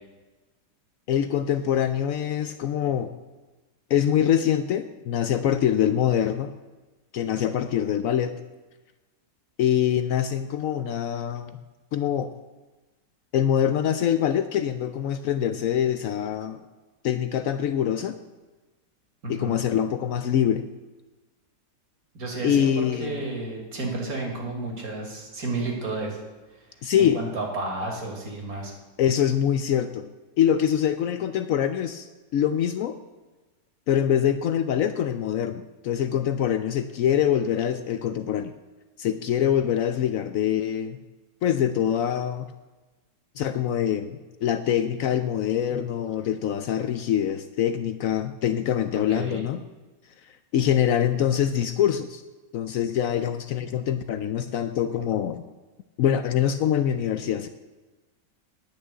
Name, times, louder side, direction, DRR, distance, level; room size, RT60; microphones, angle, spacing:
voice 1, 1.1-3.1 3.9-6.5 7.1-8.4 9.6-11.6 11.9-12.3 13.3-16.6 17.0-18.2 19.3-20.6 22.4-23.2 26.8-27.2 29.0-30.1 30.4-33.0 33.9-38.5 39.0-41.0 41.4-42.5 43.4-49.6 50.5-52.2 52.5-55.4 56.0-57.5, left 9 dB, 75° left, 11 dB, 0.7 m, -24 dB
voice 2, 19.2-19.5 22.1-26.2 26.9-28.7 49.1-49.5, right 2 dB, 55° right, 1 dB, 2.6 m, -32 dB
10.0 x 6.2 x 8.1 m, 1.2 s
omnidirectional pair, 1.9 m